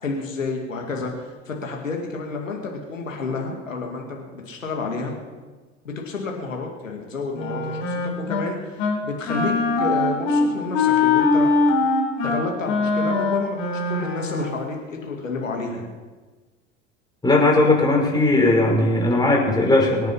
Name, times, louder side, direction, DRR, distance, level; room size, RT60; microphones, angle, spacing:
voice 1, 0.0-5.2 5.8-8.0 8.3-11.5 12.2-15.9, left 3 dB, 85° left, 1 dB, 2.3 m, -30 dB
Wind instrument woodwind instrument, 7.3-8.5 8.8-9.0 9.3-14.5, left 3 dB, 60° left, 4.2 m, -22 dB
voice 2, 17.2-20.1, left 2 dB, 10° left, -1 dB, 5.8 m, -18 dB
24.5 x 9.5 x 5.6 m, 1.3 s
figure-of-eight pair, 80°, 38 cm